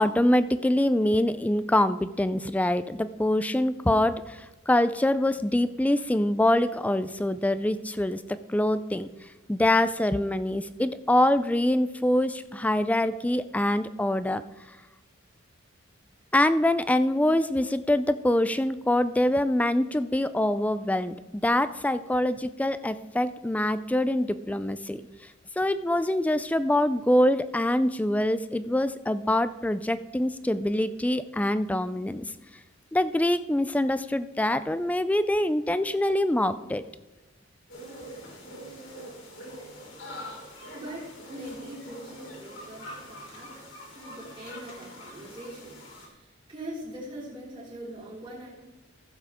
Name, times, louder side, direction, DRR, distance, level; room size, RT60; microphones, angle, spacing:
voice 1, 0.0-9.1 9.5-14.4 16.3-25.0 25.6-32.2 32.9-36.8, left 1 dB, 5° left, 13 dB, 0.3 m, -25 dB
sound 1, 37.7-46.1, equal, 70° left, 3.0 m, -44 dB
voice 2, 40.7-43.7 43.9-48.5, right 1 dB, 25° right, -6 dB, 3.3 m, -42 dB
15.5 x 7.3 x 3.6 m, 1.1 s
head